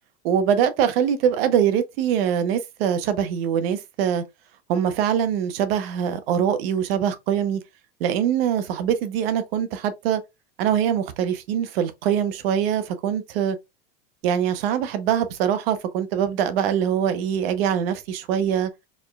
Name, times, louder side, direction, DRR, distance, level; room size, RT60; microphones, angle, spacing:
voice 1, 0.2-4.2 4.7-7.6 8.0-10.2 10.6-13.6 14.2-18.7, right 9 dB, 75° right, 1.0 m, -23 dB
4.4 x 3.7 x 2.3 m
hypercardioid pair, 100°, 30 cm